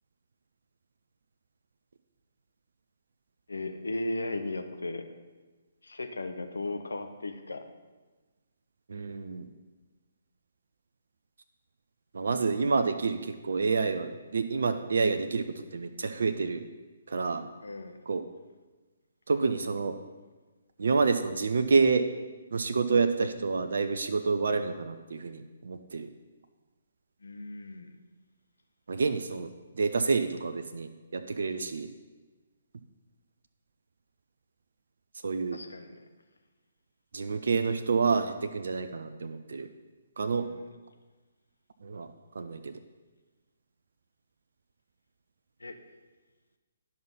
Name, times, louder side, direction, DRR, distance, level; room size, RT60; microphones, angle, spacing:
voice 1, 3.5-5.1 5.8-7.7 17.6-18.1 27.2-28.0 35.5-36.1 40.2-40.7 45.6-45.9, left 2 dB, 70° left, 7 dB, 0.9 m, -37 dB
voice 2, 8.9-9.5 12.1-16.6 17.1-17.5 18.1-18.2 19.3-20.0 20.8-22.1 22.5-26.1 28.9-31.9 35.2-35.6 37.1-39.7 40.2-40.5 41.8-42.1 42.3-42.8, right 4 dB, 60° right, 8 dB, 0.5 m, -28 dB
11.0 x 5.5 x 5.7 m, 1.3 s
figure-of-eight pair, 135°, 0 cm